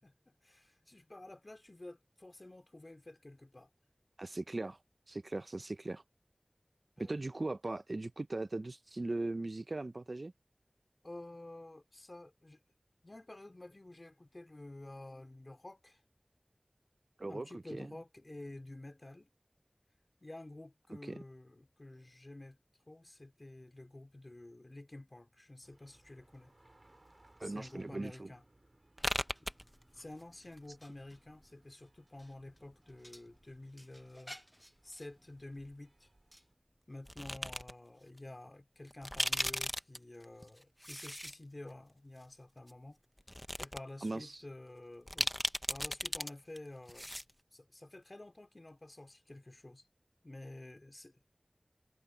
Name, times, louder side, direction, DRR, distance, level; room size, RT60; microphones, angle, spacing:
voice 1, 0.0-3.7 7.0-7.2 11.0-12.6 13.0-16.0 17.3-19.3 20.2-22.6 22.9-26.5 27.4-28.4 29.9-34.4 34.8-36.1 36.9-43.0 43.6-45.3 45.7-47.1 47.5-49.8 50.2-51.1, left 2 dB, 50° left, 3.4 m, -50 dB
voice 2, 4.2-4.8 5.1-6.0 7.0-10.3 17.2-17.9 21.1-21.2 27.4-28.3 44.0-44.4, right 2 dB, 75° right, 0.7 m, -39 dB
sound 1, 25.6-36.5, right 1 dB, 45° right, 3.4 m, -68 dB
sound 2, 29.0-30.2 30.5-31.4 32.2-33.2 33.5-35.0 36.3-36.4 37.1-37.7 38.2-38.3 38.9-41.3 41.7-41.8 42.7-42.8 43.2-43.8 44.1-44.2 45.1-46.3 46.6-46.7 46.9-47.3, equal, 5° left, 0.9 m, -37 dB
wide cardioid pair, 50°, 0 cm